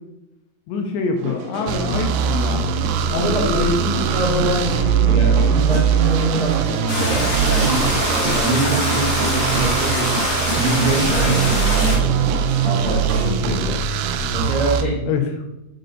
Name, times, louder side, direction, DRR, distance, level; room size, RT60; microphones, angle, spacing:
voice 1, 0.7-2.7 3.1-4.2 15.0-15.5, left 4 dB, 80° left, 3 dB, 2.8 m, -25 dB
sound 1, 1.2-13.7, equal, 70° right, 3.3 m, -30 dB
sound 2, 1.7-14.8, right 7 dB, 90° right, 3.3 m, -21 dB
voice 2, 3.1-10.1 10.4-12.3 12.6-13.8 14.3-15.0, right 1 dB, 40° right, -9 dB, 2.0 m, -24 dB
sound 3, 6.9-12.0, left 1 dB, 30° left, 1.5 m, -24 dB
6.7 x 6.7 x 3.9 m, 0.89 s
omnidirectional pair, 5.7 m